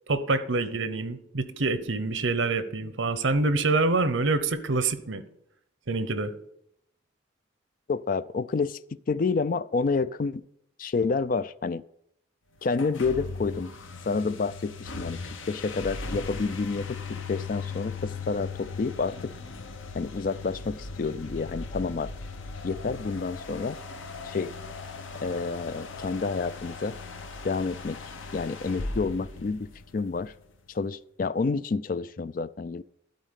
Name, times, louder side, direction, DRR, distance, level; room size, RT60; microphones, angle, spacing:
voice 1, 0.1-5.2 5.9-6.3, right 3 dB, 80° right, 0.9 m, -26 dB
voice 2, 7.9-8.8 9.1-10.4 10.8-11.8 12.6-13.7 14.1-17.0 17.3-19.3 19.9-22.1 22.6-23.8 24.2-24.5 25.2-26.9 27.4-28.0 28.3-29.7 29.9-30.3 30.7-32.8, left 4 dB, 45° left, 0.4 m, -29 dB
sound 1, 12.7-30.2, left 4 dB, 85° left, 0.9 m, -38 dB
12.5 x 4.2 x 8.2 m
head